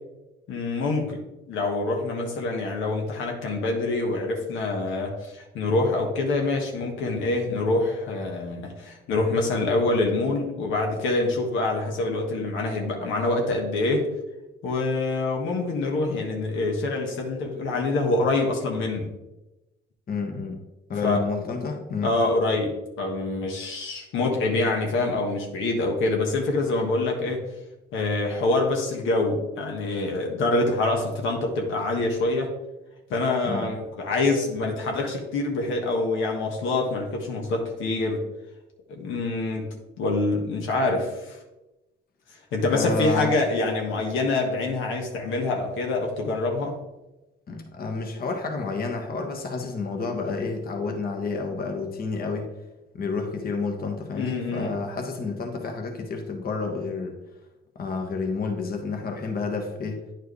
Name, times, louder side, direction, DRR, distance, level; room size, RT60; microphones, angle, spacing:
voice 1, 0.5-1.2 1.5-14.1 14.6-19.1 21.0-21.2 22.0-27.4 27.9-32.5 33.1-38.2 38.9-39.7 40.0-41.4 42.5-46.8 54.1-54.8, left 2 dB, 85° left, 1 dB, 1.3 m, -25 dB
voice 2, 20.1-20.6 20.9-22.1 33.4-33.7 42.7-43.3 47.5-52.5 52.9-57.2 57.8-60.0, left 4 dB, 50° left, 3 dB, 1.1 m, -30 dB
9.3 x 4.6 x 3.2 m, 0.99 s
cardioid pair, 90°, 20 cm